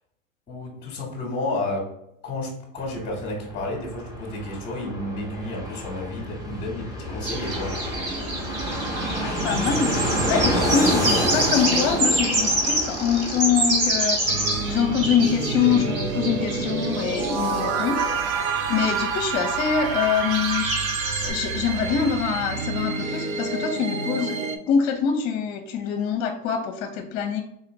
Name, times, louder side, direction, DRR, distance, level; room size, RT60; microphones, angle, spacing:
voice 1, 0.5-2.0 2.2-7.8, left 2 dB, 20° left, -2 dB, 0.9 m, -31 dB
Fixed-wing aircraft airplane, 2.8-21.2 21.4-21.5 21.7-22.4, equal, 10° right, 0.7 m, -30 dB
sound 1, 7.2-21.3, right 2 dB, 35° right, 1.4 m, -27 dB
voice 2, 9.2-14.2 14.7-18.0 18.3-18.4 18.7-20.6 21.2-24.4 24.7-27.4, left 7 dB, 45° left, 4 dB, 0.6 m, -24 dB
sound 2, 14.3-24.6, right 5 dB, 80° right, 0.7 m, -28 dB
4.0 x 2.4 x 3.0 m, 0.79 s
hypercardioid pair, 115°, 41 cm